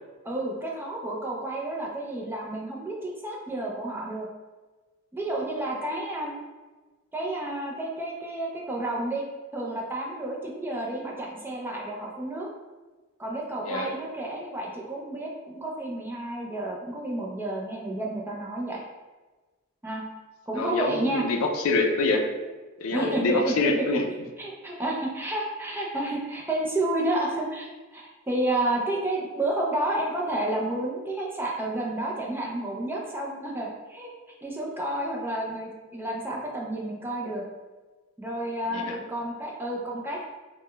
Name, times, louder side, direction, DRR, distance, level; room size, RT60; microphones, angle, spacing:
voice 1, 0.2-4.3 5.1-6.3 7.1-9.2 9.5-12.5 13.2-18.8 19.8-20.0 20.5-21.2 22.9-23.4 24.4-34.1 34.4-37.4 38.2-40.3, right 1 dB, 10° right, -3 dB, 0.4 m, -30 dB
voice 2, 20.6-22.3 22.8-24.0 38.7-39.0, left 3 dB, 80° left, 3 dB, 0.4 m, -25 dB
4.7 x 2.1 x 2.2 m, 1.2 s
head